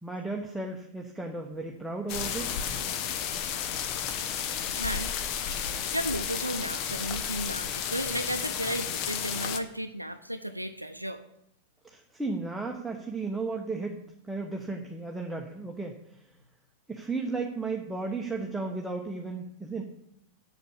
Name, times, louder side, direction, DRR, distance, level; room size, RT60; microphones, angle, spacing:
voice 1, 0.0-2.5 11.8-14.0 14.2-16.0 16.9-19.8, right 3 dB, 5° right, 0 dB, 1.1 m, -34 dB
sound 1, 2.1-9.6, left 8 dB, 40° left, 1.0 m, -32 dB
voice 2, 4.7-5.1 5.9-11.2, right 1 dB, 90° right, 7 dB, 0.6 m, -34 dB
8.1 x 7.1 x 8.1 m, 0.79 s
figure-of-eight pair, 90°, 0 cm